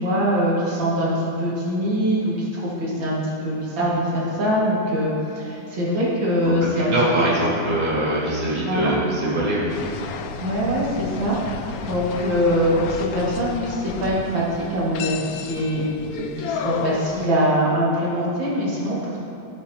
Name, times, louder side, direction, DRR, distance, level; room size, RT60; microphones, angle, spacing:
voice 1, 0.0-7.2 8.7-9.0 10.4-19.2, equal, 90° right, -6 dB, 2.7 m, -23 dB
voice 2, 6.6-9.7 10.0-10.1, right 1 dB, 20° right, -8 dB, 2.2 m, -23 dB
sound 1, 9.7-17.3, left 6 dB, 75° left, 0.8 m, -32 dB
15.5 x 7.8 x 2.8 m, 2.8 s
omnidirectional pair, 2.0 m